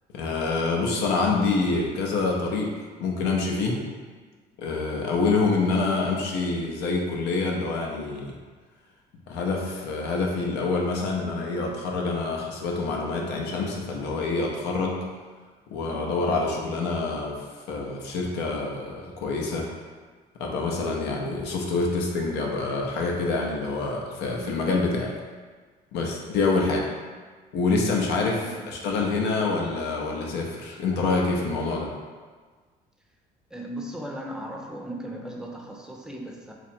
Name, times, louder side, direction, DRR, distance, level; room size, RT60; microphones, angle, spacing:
voice 1, 0.1-2.7 3.0-3.8 4.6-8.3 9.3-15.0 15.7-19.7 20.4-25.1 25.9-26.9 27.5-31.9, left 3 dB, 85° left, -1 dB, 0.7 m, -26 dB
voice 2, 28.4-28.9 33.5-36.5, right 1 dB, 5° right, 0 dB, 0.5 m, -37 dB
3.0 x 2.5 x 4.2 m, 1.5 s
cardioid pair, 110°, 17 cm